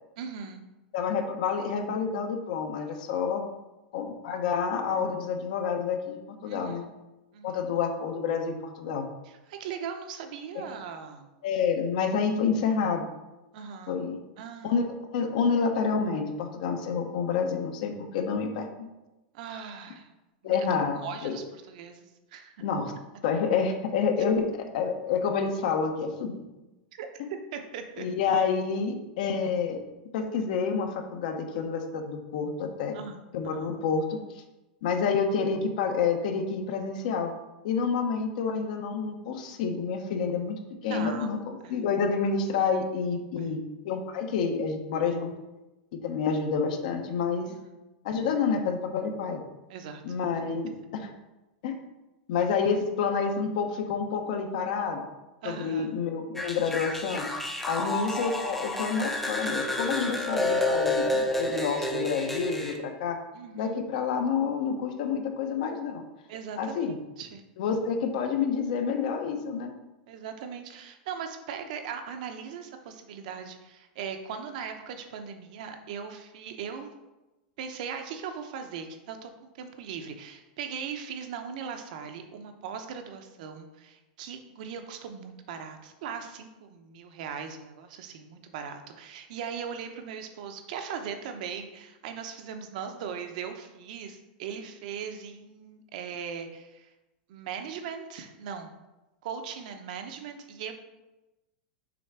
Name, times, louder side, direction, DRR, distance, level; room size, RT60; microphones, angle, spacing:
voice 1, 0.2-0.6 6.4-6.9 7.3-7.6 9.2-11.3 13.5-14.0 14.4-14.9 19.3-20.1 20.4-20.6 20.9-22.6 26.9-27.1 27.5-28.1 32.9-33.7 40.8-41.3 41.6-41.8 43.4-43.5 47.5-47.7 49.7-50.2 55.4-55.9 57.8-57.9 63.3-63.8 66.3-67.4 70.1-76.9 77.6-96.9 97.3-98.7 99.2-100.7, right 7 dB, 60° right, 6 dB, 0.8 m, -39 dB
voice 2, 0.9-3.4 3.9-6.8 7.4-9.1 10.5-10.7 11.4-13.0 13.9-14.2 14.6-18.9 20.4-21.3 22.6-22.9 23.2-24.5 24.7-26.4 28.0-29.8 30.1-32.9 33.3-34.4 34.8-37.3 37.6-43.6 43.8-45.3 46.0-47.5 48.0-49.4 50.0-50.7 51.6-51.8 52.3-55.1 55.4-57.3 57.6-63.2 63.5-66.0 66.6-67.0 67.6-69.7, left 5 dB, 65° left, 5 dB, 0.9 m, -28 dB
sound 1, 56.4-62.8, left 2 dB, 5° left, 0.6 m, -30 dB
6.1 x 3.5 x 4.7 m, 1.0 s
supercardioid pair, 160°, 5 cm